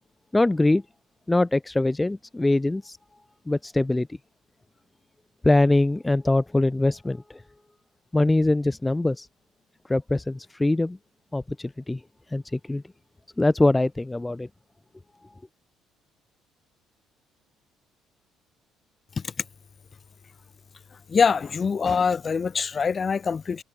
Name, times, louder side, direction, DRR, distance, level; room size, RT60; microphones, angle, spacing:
voice 1, 0.3-0.8 1.3-3.0 3.5-4.1 5.4-7.4 8.1-9.3 9.9-11.0 11.3-12.0 12.3-12.8 13.4-14.5, left 2 dB, 10° left, 1.8 m, -23 dB
voice 2, 21.1-23.6, left 5 dB, 30° left, 2.9 m, -24 dB
cardioid pair, 125°, 0 cm